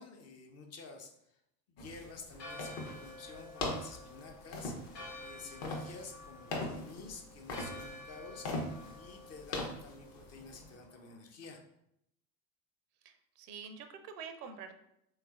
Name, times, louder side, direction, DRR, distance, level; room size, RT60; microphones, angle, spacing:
voice 1, 0.0-1.4 1.7-4.8 5.2-11.6, left 4 dB, 30° left, 3 dB, 0.5 m, -50 dB
sound 1, 1.8-10.7, left 2 dB, 50° left, 1.0 m, -42 dB
Church bell, 2.3-11.2, left 2 dB, 90° left, 1.1 m, -51 dB
voice 2, 13.0-14.7, right 6 dB, 70° right, 8 dB, 0.6 m, -47 dB
3.6 x 3.2 x 2.3 m, 0.78 s
hypercardioid pair, 75°, 50 cm